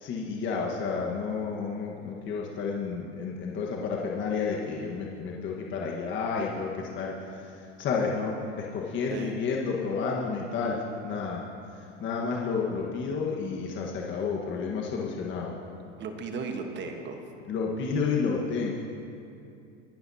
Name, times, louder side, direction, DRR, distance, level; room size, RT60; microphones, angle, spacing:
voice 1, 0.0-11.4 11.7-15.5 17.5-18.7, left 5 dB, 35° left, -2 dB, 1.5 m, -31 dB
voice 2, 16.0-17.2, right 4 dB, 30° right, 4 dB, 1.3 m, -35 dB
24.5 x 11.5 x 2.9 m, 2.6 s
hypercardioid pair, 110°, 35 cm